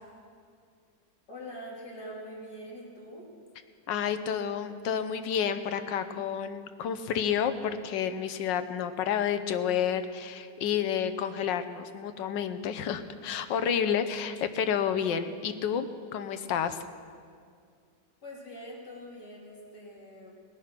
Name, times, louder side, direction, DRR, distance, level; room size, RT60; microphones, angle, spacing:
voice 1, 1.3-3.3 18.2-20.3, equal, 65° left, -4 dB, 3.4 m, -44 dB
voice 2, 3.9-16.8, left 8 dB, 85° left, 10 dB, 1.5 m, -30 dB
19.5 x 9.8 x 5.9 m, 2.2 s
omnidirectional pair, 1.9 m